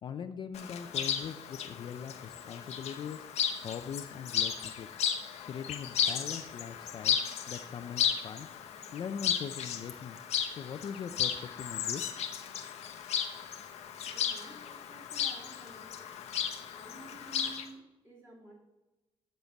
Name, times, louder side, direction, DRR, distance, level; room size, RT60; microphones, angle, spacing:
voice 1, 0.0-3.2 3.6-4.9 5.5-7.2 7.5-8.5 8.9-10.2 10.6-12.1, left 7 dB, 45° left, 8 dB, 0.4 m, -41 dB
Chirp tweet, 0.5-17.6, left 8 dB, 85° left, 0.9 m, -35 dB
voice 2, 14.1-15.9 16.7-18.5, right 2 dB, 20° right, -4 dB, 2.8 m, -52 dB
9.1 x 7.1 x 4.1 m, 1.1 s
wide cardioid pair, 180°, 11 cm